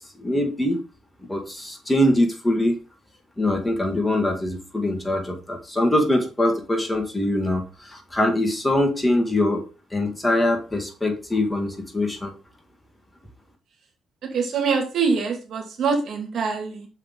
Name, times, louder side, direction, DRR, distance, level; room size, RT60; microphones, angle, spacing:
voice 1, 0.2-0.8 1.3-2.8 3.4-9.6 9.9-12.3, left 1 dB, 15° left, 3 dB, 1.9 m, -23 dB
voice 2, 14.2-16.9, right 5 dB, 65° right, 3 dB, 2.5 m, -24 dB
6.6 x 5.6 x 3.9 m, 0.33 s
cardioid pair, 90°, 0 cm